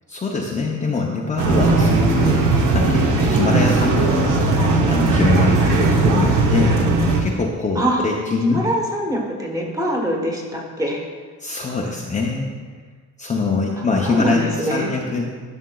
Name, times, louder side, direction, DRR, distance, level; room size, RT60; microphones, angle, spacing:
voice 1, 0.1-2.5 2.7-4.6 4.9-6.8 7.2-8.6 11.4-12.5 13.2-15.3, left 3 dB, 20° left, -2 dB, 0.6 m, -23 dB
sound 1, 1.4-7.2, right 3 dB, 70° right, 0.9 m, -17 dB
voice 2, 8.5-11.0 13.8-14.9, equal, 10° right, 0 dB, 1.1 m, -24 dB
11.0 x 6.3 x 2.3 m, 1.5 s
cardioid pair, 135°, 33 cm